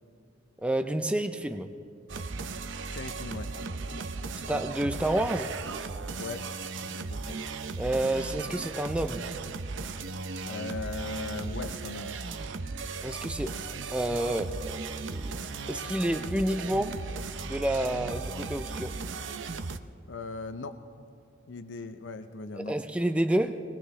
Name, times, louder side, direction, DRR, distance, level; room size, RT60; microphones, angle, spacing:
voice 1, 0.6-1.7 4.5-5.5 7.8-9.2 13.0-13.6 13.9-14.7 15.1-15.3 15.7-17.0 17.5-19.0 22.6-23.6, right 1 dB, 5° right, 7 dB, 0.5 m, -29 dB
sound 1, 2.1-19.8, right 4 dB, 75° right, 0.6 m, -36 dB
voice 2, 2.9-3.5 6.2-6.4 6.8-7.4 10.5-12.2 20.1-20.8 21.5-22.8, left 3 dB, 70° left, 9 dB, 0.7 m, -38 dB
23.0 x 19.0 x 3.2 m, 2.5 s
head